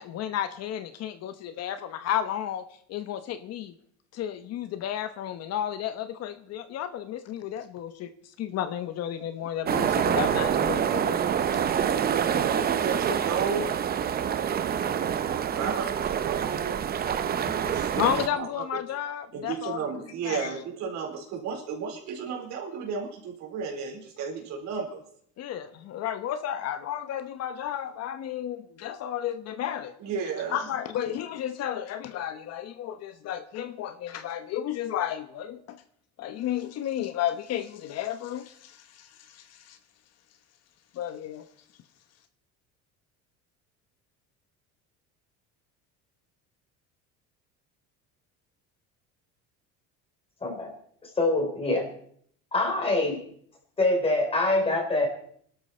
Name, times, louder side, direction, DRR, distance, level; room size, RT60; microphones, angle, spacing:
voice 1, 0.0-2.6 2.9-3.7 4.1-8.1 8.4-11.2 11.5-11.6 18.0-19.8 20.3-20.5 25.4-29.9 30.5-35.8 36.2-39.8 40.9-41.5, left 10 dB, 55° left, 10 dB, 1.1 m, -32 dB
sound 1, 9.7-18.3, right 8 dB, 30° right, 0.8 m, -26 dB
voice 2, 12.3-13.7 14.6-16.8 17.5-18.8 19.3-25.0 30.0-30.7, right 6 dB, 65° right, 0 dB, 4.3 m, -34 dB
voice 3, 50.4-50.7 51.0-51.9 52.5-53.2 53.8-55.1, left 2 dB, 20° left, 2 dB, 3.9 m, -25 dB
23.0 x 12.5 x 4.4 m, 0.65 s
cardioid pair, 140°, 31 cm